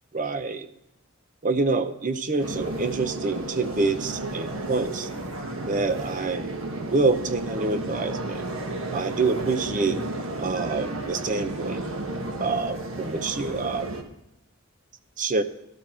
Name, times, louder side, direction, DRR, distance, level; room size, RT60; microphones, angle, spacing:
voice 1, 0.1-0.7 1.4-5.1 5.7-6.5 6.9-8.5 8.9-10.0 10.4-11.8 12.4-13.9 15.2-15.4, right 3 dB, 40° right, 10 dB, 0.8 m, -26 dB
sound 1, 2.4-14.0, right 2 dB, 70° right, 1.5 m, -33 dB
12.5 x 12.5 x 4.5 m, 0.84 s
head